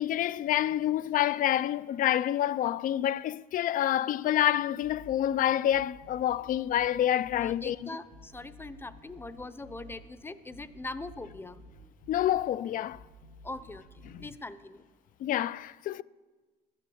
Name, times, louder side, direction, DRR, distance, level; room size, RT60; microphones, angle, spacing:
voice 1, 0.0-7.8 12.1-13.0 14.1-14.3 15.2-16.0, left 12 dB, 55° left, 0.4 m, -27 dB
sound 1, 4.8-14.2, equal, 80° left, 4.8 m, -52 dB
voice 2, 7.3-11.6 13.4-14.9, left 2 dB, 15° left, 0.6 m, -42 dB
13.0 x 9.8 x 7.1 m
cardioid pair, 110°, 17 cm